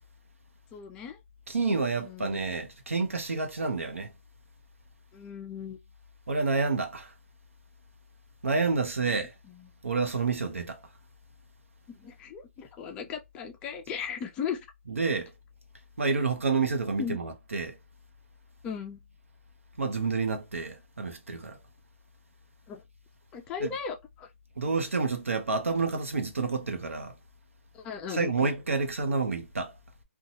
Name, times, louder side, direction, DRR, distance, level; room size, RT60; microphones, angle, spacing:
voice 1, 0.7-1.2 2.0-2.5 5.1-5.8 11.9-14.6 17.0-17.2 18.6-19.0 22.7-22.8 23.3-24.3 27.7-28.5, left 7 dB, 15° left, 0.3 m, -37 dB
voice 2, 1.5-4.1 6.3-7.1 8.4-9.3 9.8-10.8 14.9-15.3 16.0-17.8 19.8-21.6 23.6-23.7 24.6-27.1 28.1-29.7, right 4 dB, 85° right, 0.8 m, -29 dB
2.6 x 2.3 x 2.8 m
hypercardioid pair, 150°, 7 cm